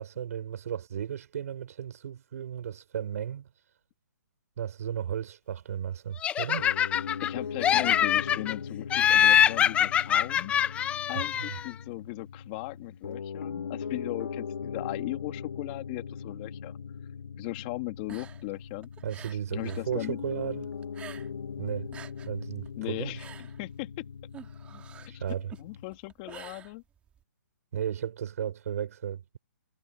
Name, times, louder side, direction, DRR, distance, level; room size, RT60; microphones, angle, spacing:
voice 1, 0.0-3.5 4.6-6.7 11.1-11.6 19.0-20.7 21.6-21.9 22.3-23.2 25.1-25.5 27.7-29.4, right 9 dB, 55° right, 5.8 m, -34 dB
Laughter, 6.2-7.3 7.6-8.5 8.9-11.7, left 9 dB, 10° left, 1.1 m, -24 dB
Piano, 6.6-26.0, left 6 dB, 70° left, 7.2 m, -40 dB
voice 2, 7.2-10.5 11.1-16.8 17.4-18.9 19.5-20.2 22.8-23.9 25.1-25.2 25.6-26.8, left 26 dB, 30° left, 3.0 m, -38 dB
sound 1, 18.0-19.9 20.2-21.5 21.8-27.2, right 8 dB, 10° right, 2.5 m, -49 dB
hypercardioid pair, 155°, 10 cm